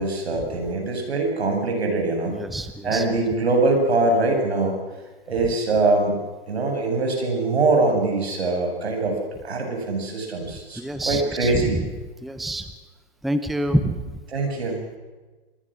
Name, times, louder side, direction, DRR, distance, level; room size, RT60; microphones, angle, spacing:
voice 1, 0.0-2.4 2.8-4.8 5.3-6.2 6.5-11.8 14.3-14.8, right 2 dB, 85° right, 3 dB, 7.9 m, -23 dB
voice 2, 2.3-3.0 10.8-12.7 13.2-14.1, right 1 dB, ahead, 10 dB, 0.7 m, -27 dB
27.0 x 22.0 x 6.4 m, 1.3 s
hypercardioid pair, 140°, 31 cm